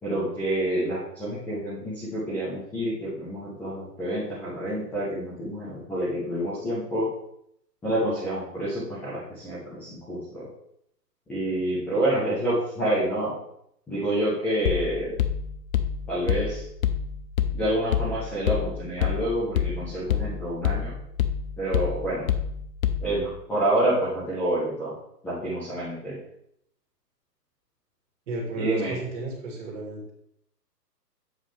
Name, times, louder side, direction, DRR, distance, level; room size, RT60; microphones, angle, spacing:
voice 1, 0.0-7.1 7.8-10.5 11.3-13.4 13.9-15.1 16.1-16.6 17.5-20.9 21.6-22.3 23.0-24.9 25.2-26.2 28.6-29.0, right 1 dB, 5° left, -12 dB, 0.7 m, -28 dB
sound 1, 14.7-23.3, left 9 dB, 55° left, 0.7 m, -28 dB
voice 2, 28.3-30.1, right 3 dB, 45° right, 0 dB, 2.3 m, -32 dB
7.7 x 5.6 x 3.3 m, 0.73 s
hypercardioid pair, 150°, 49 cm